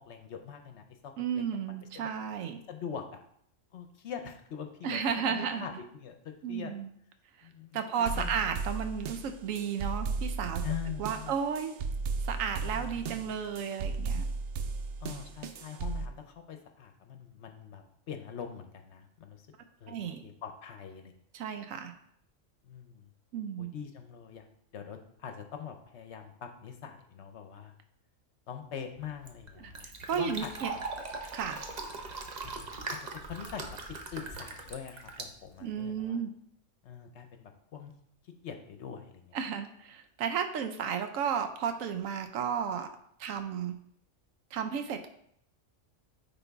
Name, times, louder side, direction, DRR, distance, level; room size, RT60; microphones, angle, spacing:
voice 1, 0.1-2.1 2.7-3.2 3.7-5.0 5.3-6.7 7.4-8.4 10.6-11.4 12.6-13.1 15.0-19.5 19.8-21.1 22.6-23.0 23.6-24.5 24.7-27.7 28.5-29.9 30.1-30.5 32.4-33.7 34.1-36.2 36.8-37.9 38.2-39.3, left 8 dB, 65° left, 6 dB, 0.9 m, -43 dB
voice 2, 1.2-2.6 4.8-5.7 6.4-6.9 7.7-10.6 11.0-11.8 12.2-14.3 19.9-20.2 21.3-21.9 23.3-23.7 29.6-29.7 30.1-30.7 31.3-31.6 35.6-36.3 39.3-42.9 43.2-43.8 44.5-45.1, right 7 dB, 85° right, 8 dB, 1.0 m, -33 dB
sound 1, 8.1-16.1, right 4 dB, 70° right, 0.8 m, -35 dB
Fill (with liquid), 29.0-36.1, right 3 dB, 40° right, 0.7 m, -41 dB
9.5 x 4.0 x 3.5 m, 0.69 s
omnidirectional pair, 1.3 m